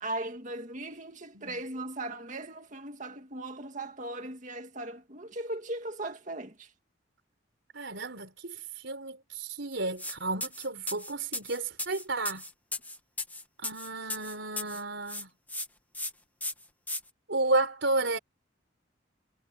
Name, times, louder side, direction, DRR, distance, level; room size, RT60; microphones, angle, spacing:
voice 1, 0.0-6.7, right 2 dB, 40° right, 2.1 m, -38 dB
voice 2, 7.7-12.4 13.6-15.3 17.3-18.2, right 2 dB, 70° right, 4.4 m, -32 dB
sound 1, 10.0-10.2 10.4-14.8 15.1-15.7 15.9-16.1 16.4-17.0, left 2 dB, 10° left, 1.5 m, -36 dB
head